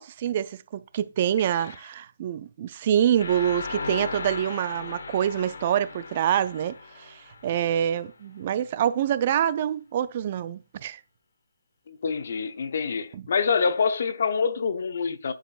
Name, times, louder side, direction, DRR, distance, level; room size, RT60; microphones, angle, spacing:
voice 1, 0.0-11.0 13.1-13.2, right 10 dB, 30° right, 0.3 m, -26 dB
sound 1, 3.2-8.1, left 4 dB, 70° left, 1.3 m, -37 dB
voice 2, 11.9-15.3, left 5 dB, 55° left, 0.8 m, -26 dB
10.0 x 5.1 x 2.4 m
hypercardioid pair, 165°, 0 cm